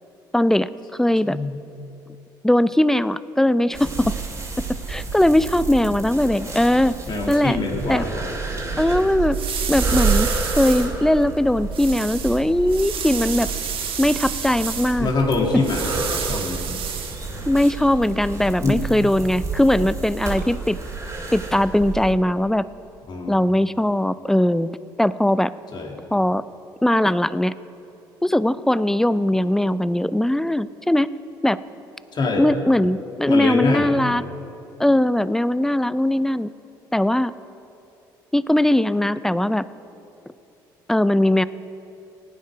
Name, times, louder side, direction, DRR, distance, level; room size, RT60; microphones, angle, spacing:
voice 1, 0.3-1.4 2.4-4.1 4.9-6.9 7.3-7.6 7.9-8.0 8.8-9.4 9.7-10.3 10.6-13.5 14.0-15.1 17.5-20.8 21.3-22.6 23.3-24.7 25.0-25.5 26.1-26.4 26.8-27.5 28.2-31.1 31.4-31.6 32.4-34.2 34.8-36.5 36.9-37.3 38.3-39.6 40.9-41.4, left 1 dB, 5° left, 16 dB, 0.4 m, -20 dB
voice 2, 1.2-1.6 7.1-8.8 15.0-16.0 16.3-16.6 18.6-18.8 23.1-23.4 25.7-25.9 32.1-32.5 33.3-33.9, left 3 dB, 45° left, 1 dB, 2.3 m, -24 dB
sound 1, 3.7-22.1, right 4 dB, 25° right, 2.6 m, -30 dB
sound 2, 8.5-17.7, right 7 dB, 55° right, 1.5 m, -31 dB
15.5 x 9.4 x 5.1 m, 2.8 s
hypercardioid pair, 60°, 11 cm